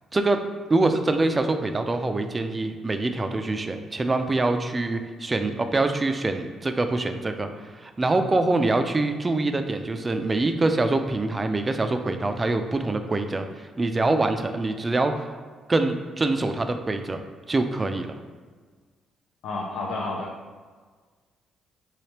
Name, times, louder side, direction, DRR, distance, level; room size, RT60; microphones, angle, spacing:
voice 1, 0.7-7.5 7.8-15.4 15.7-17.2 17.5-18.1, right 2 dB, 25° right, 7 dB, 0.3 m, -24 dB
voice 2, 19.4-20.3, left 2 dB, 80° left, -2 dB, 0.4 m, -30 dB
3.2 x 3.1 x 2.9 m, 1.5 s
cardioid pair, 90°, 0 cm